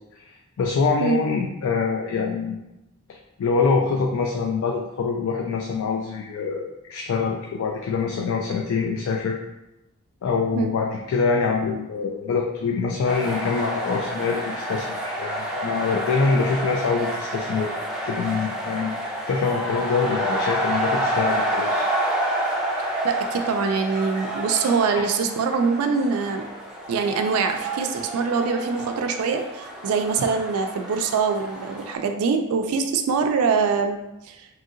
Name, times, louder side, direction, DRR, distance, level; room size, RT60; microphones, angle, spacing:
voice 1, 0.2-2.6 3.1-9.4 10.2-17.7 18.0-19.0 19.3-21.9, left 5 dB, 65° left, 0 dB, 0.3 m, -25 dB
sound 1, 13.1-32.0, right 1 dB, 5° right, 0.4 m, -29 dB
voice 2, 22.8-26.5 26.9-34.5, right 5 dB, 70° right, 6 dB, 0.3 m, -24 dB
3.0 x 2.7 x 2.5 m, 0.94 s
head